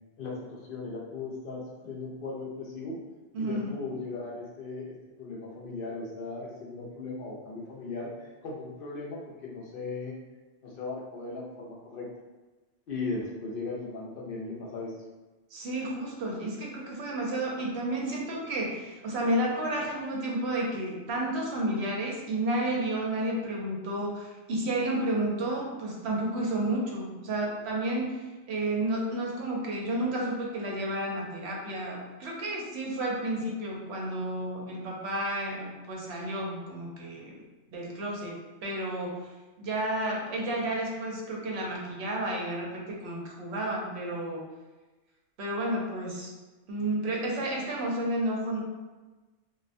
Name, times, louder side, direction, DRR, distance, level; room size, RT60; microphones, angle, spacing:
voice 1, 0.2-3.0 3.4-10.1 10.6-12.1 12.9-14.9, left 3 dB, 60° left, -4 dB, 0.6 m, -37 dB
voice 2, 3.3-3.7 15.5-37.4 37.7-38.3 38.6-39.2 39.6-44.4 45.4-46.3 46.7-48.6, right 1 dB, 65° right, -2 dB, 0.8 m, -31 dB
2.4 x 2.1 x 2.5 m, 1.2 s
omnidirectional pair, 1.3 m